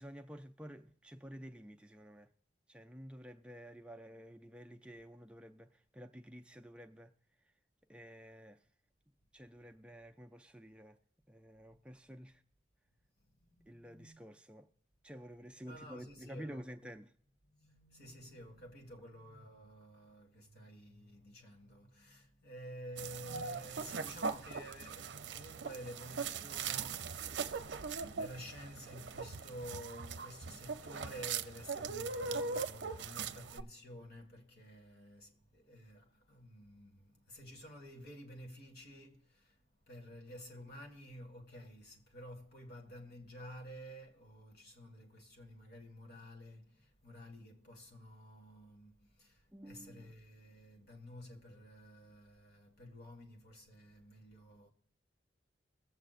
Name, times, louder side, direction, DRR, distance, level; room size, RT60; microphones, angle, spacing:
voice 1, 0.0-2.3 2.7-7.1 7.9-8.6 9.3-11.0 11.3-12.4 13.7-14.7 15.0-17.1 49.5-50.1, equal, 5° right, 0.4 m, -51 dB
voice 2, 13.4-14.2 15.7-16.6 17.4-54.7, equal, 55° left, 1.9 m, -52 dB
sound 1, 23.0-33.6, right 5 dB, 70° right, 0.6 m, -40 dB
22.5 x 7.8 x 2.5 m
head